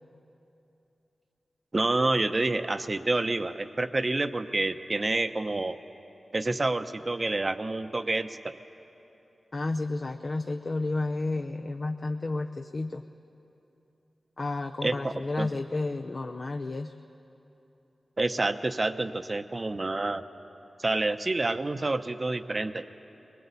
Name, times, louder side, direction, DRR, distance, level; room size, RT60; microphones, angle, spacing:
voice 1, 1.7-5.8 6.3-8.6 14.8-15.5 18.2-20.2 20.8-22.9, right 2 dB, 35° right, 9 dB, 0.8 m, -28 dB
voice 2, 9.5-13.0 14.4-16.9, left 2 dB, 45° left, 5 dB, 0.6 m, -31 dB
21.5 x 21.5 x 8.3 m, 3.0 s
wide cardioid pair, 75°, 0 cm